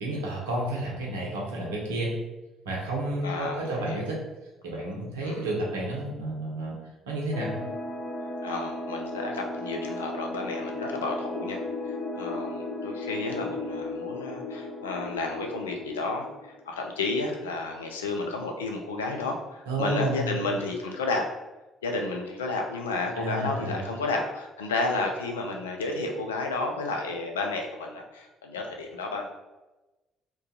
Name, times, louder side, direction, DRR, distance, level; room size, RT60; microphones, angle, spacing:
voice 1, 0.0-2.1 2.6-4.2 4.6-6.8 7.1-7.5 19.7-20.5 23.1-23.9, right 1 dB, 85° right, -3 dB, 0.6 m, -31 dB
voice 2, 3.2-4.1 5.2-5.5 8.4-21.3 21.8-29.3, left 3 dB, 90° left, 2 dB, 0.3 m, -32 dB
sound 1, 7.3-16.7, left 2 dB, 55° left, 0.8 m, -35 dB
2.3 x 2.2 x 2.7 m, 1.1 s
hypercardioid pair, 50°, 0 cm